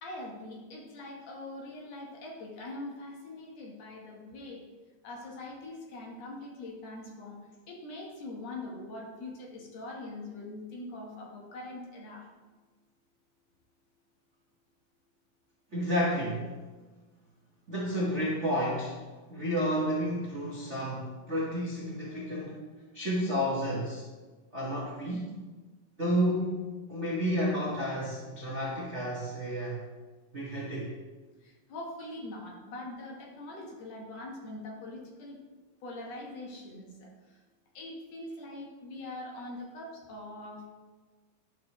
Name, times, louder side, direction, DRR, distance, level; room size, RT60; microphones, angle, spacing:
voice 1, 0.0-4.6 5.0-7.4 7.7-12.3 31.4-35.4 35.8-37.1 37.7-40.7, left 2 dB, 60° left, -1 dB, 2.1 m, -42 dB
voice 2, 15.7-16.6 17.7-19.0 19.3-22.6 22.9-24.1 24.5-25.3 26.0-29.8 30.3-30.9, equal, 75° right, -6 dB, 0.6 m, -31 dB
11.5 x 6.1 x 3.0 m, 1.3 s
omnidirectional pair, 3.6 m